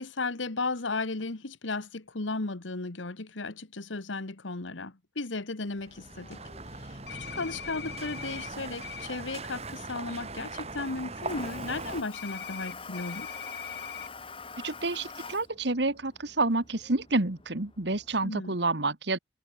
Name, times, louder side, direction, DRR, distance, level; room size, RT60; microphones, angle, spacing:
voice 1, 0.0-6.4 7.2-13.3 18.2-18.6, left 3 dB, 80° left, 1.5 m, -35 dB
sound 1, 5.7-12.0, right 3 dB, 35° right, 6.0 m, -40 dB
Toilet flush, 6.0-18.3, left 4 dB, 30° left, 5.1 m, -47 dB
sound 2, 7.1-8.5 8.8-9.1 12.1-14.1, left 8 dB, 60° left, 2.5 m, -41 dB
voice 2, 14.6-19.2, right 2 dB, 65° right, 1.8 m, -29 dB
head